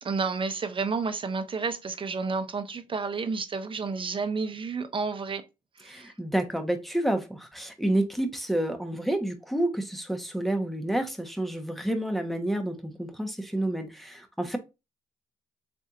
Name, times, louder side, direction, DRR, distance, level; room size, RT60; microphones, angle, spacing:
voice 1, 0.0-5.4 5.8-6.1, right 4 dB, 40° right, 0.8 m, -31 dB
voice 2, 5.9-14.6, right 1 dB, ahead, 1.1 m, -29 dB
4.2 x 3.4 x 2.5 m
cardioid pair, 70°, 14 cm